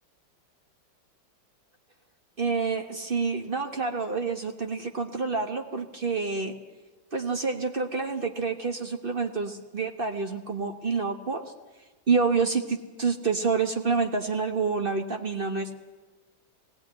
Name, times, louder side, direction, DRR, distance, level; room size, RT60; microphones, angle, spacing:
voice 1, 2.4-6.5 7.1-11.4 12.1-15.7, right 4 dB, 35° right, 6 dB, 1.1 m, -28 dB
20.5 x 16.5 x 9.3 m, 1.3 s
omnidirectional pair, 2.1 m